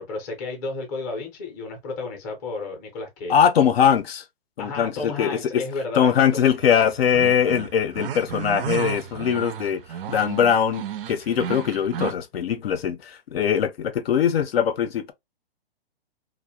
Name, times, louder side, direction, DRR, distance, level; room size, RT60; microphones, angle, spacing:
voice 1, 0.0-3.3 4.6-6.6, left 3 dB, 20° left, 0.5 m, -32 dB
voice 2, 3.3-4.2 4.6-5.6 6.0-9.8 10.1-15.1, left 8 dB, 70° left, 0.6 m, -21 dB
sound 1, 6.6-12.1, right 9 dB, 65° right, 0.4 m, -33 dB
2.5 x 2.1 x 2.7 m
hypercardioid pair, 155°, 31 cm